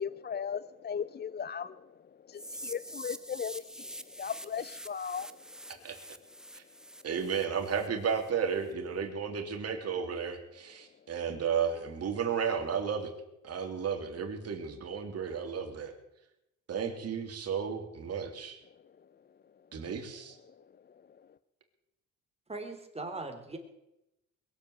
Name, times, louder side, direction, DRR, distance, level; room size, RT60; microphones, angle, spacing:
voice 1, 0.0-1.9 2.3-5.4 20.6-21.0, left 7 dB, 35° left, 16 dB, 0.5 m, -37 dB
sound 1, 2.4-8.3, right 1 dB, ahead, 0.9 m, -46 dB
voice 2, 7.0-13.1 13.4-15.9 16.7-18.6 19.7-20.4, right 7 dB, 55° right, 4 dB, 3.1 m, -33 dB
voice 3, 22.5-23.6, right 3 dB, 20° right, 4 dB, 3.4 m, -39 dB
21.5 x 7.8 x 8.1 m, 0.88 s
cardioid pair, 90°, 30 cm